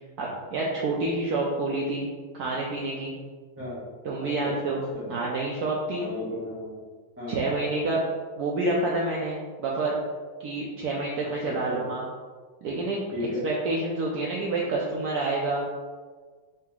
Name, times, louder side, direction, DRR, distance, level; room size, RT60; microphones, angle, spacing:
voice 1, 0.2-2.1 2.3-3.1 4.0-4.8 5.1-6.1 7.3-8.0 8.4-10.0 10.4-12.0 12.6-13.0 13.4-15.6, right 2 dB, 80° right, -3 dB, 0.8 m, -28 dB
voice 2, 4.4-5.1 6.0-6.7 7.2-7.4 11.4-11.8 13.1-13.4, left 1 dB, 15° right, -9 dB, 0.5 m, -35 dB
4.0 x 2.8 x 3.5 m, 1.5 s
omnidirectional pair, 2.2 m